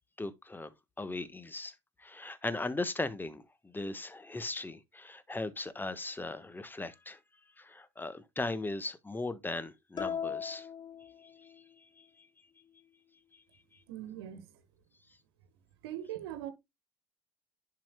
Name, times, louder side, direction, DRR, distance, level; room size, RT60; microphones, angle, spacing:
voice 1, 0.2-0.7 1.0-7.2 7.6-10.7 11.2-11.3 12.0-12.3, left 2 dB, 15° left, 1.2 m, -38 dB
sound 1, 10.0-11.8, left 7 dB, 30° left, 1.0 m, -39 dB
voice 2, 13.9-14.5 15.8-16.5, right 12 dB, 80° right, 1.3 m, -40 dB
10.5 x 5.0 x 2.2 m
hypercardioid pair, 60°, 13 cm